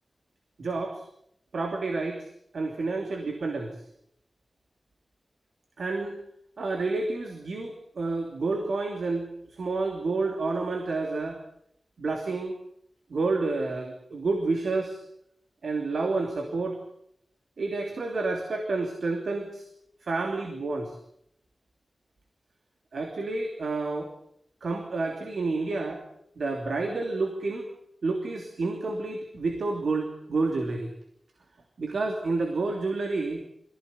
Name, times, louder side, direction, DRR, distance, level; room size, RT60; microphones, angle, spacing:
voice 1, 0.6-1.0 1.5-2.3 2.5-3.7 5.8-6.2 6.6-11.4 12.0-12.6 13.1-15.0 15.6-16.8 17.6-19.6 20.0-20.9 22.9-24.1 24.6-26.0 26.4-27.7 28.0-30.9 31.8-33.4, right 3 dB, 80° right, 4 dB, 2.9 m, -29 dB
23.0 x 16.0 x 9.6 m, 0.73 s
wide cardioid pair, 100°, 0 cm